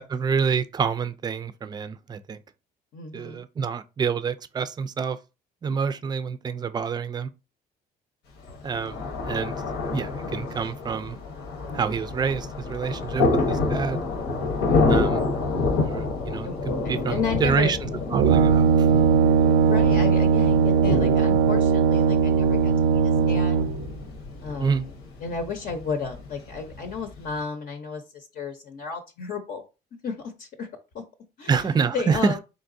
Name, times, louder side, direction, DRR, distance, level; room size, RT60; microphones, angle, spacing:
voice 1, 0.1-2.4 3.1-5.2 5.6-7.3 8.6-9.6 9.9-11.2 11.7-14.0 14.9-15.2 15.7-17.8 18.1-19.1 24.6-24.8 31.5-32.3, right 6 dB, 25° right, 0.4 m, -27 dB
voice 2, 2.9-3.4 14.5-15.0 16.4-16.6 17.1-17.8 19.4-23.6 24.4-24.9 25.2-29.6 30.0-30.7 30.9-31.0 31.4-31.7 31.9-32.4, left 5 dB, 60° left, 0.8 m, -33 dB
Thunder, 8.4-27.4, left 3 dB, 85° left, 1.1 m, -28 dB
Brass instrument, 18.1-23.9, right 6 dB, 90° right, 0.4 m, -19 dB
3.9 x 3.4 x 2.6 m
cardioid pair, 110°, 17 cm